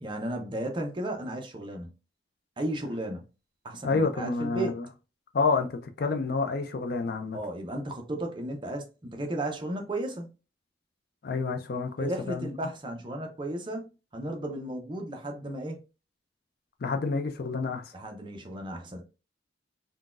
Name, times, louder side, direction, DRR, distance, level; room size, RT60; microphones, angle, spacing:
voice 1, 0.0-2.0 2.6-3.3 3.6-4.8 7.3-10.3 12.0-15.8 17.9-19.0, right 1 dB, 25° right, 0.6 m, -34 dB
voice 2, 3.8-4.9 5.3-7.4 11.2-12.5 16.8-17.9, left 4 dB, 55° left, 0.5 m, -29 dB
3.9 x 2.2 x 2.4 m
head